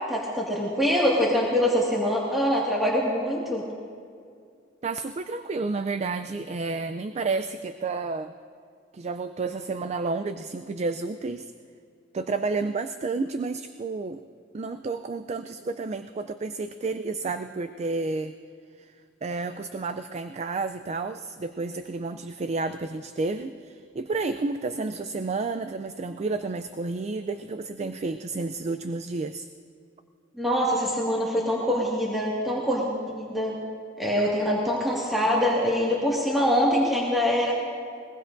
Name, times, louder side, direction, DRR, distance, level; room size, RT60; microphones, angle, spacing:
voice 1, 0.1-3.6 30.4-33.6 34.0-37.5, equal, ahead, -6 dB, 1.8 m, -24 dB
voice 2, 4.8-8.3 8.9-11.5 12.1-14.2 14.5-18.3 18.8-29.5, right 3 dB, 35° right, 9 dB, 0.4 m, -31 dB
21.5 x 20.5 x 2.6 m, 2.3 s
head